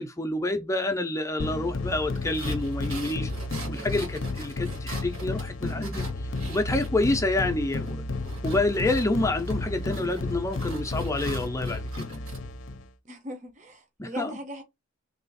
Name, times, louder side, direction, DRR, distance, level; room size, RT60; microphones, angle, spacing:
voice 1, 0.0-3.3 3.7-8.0 8.4-12.2 14.0-14.4, left 2 dB, 15° left, 0.5 m, -28 dB
sound 1, 1.4-12.9, left 2 dB, 60° left, 0.6 m, -32 dB
sound 2, 2.1-7.4 7.7-12.4, right 3 dB, 75° right, 1.7 m, -44 dB
voice 2, 13.0-14.6, equal, 35° right, 0.7 m, -39 dB
3.3 x 2.4 x 4.0 m
head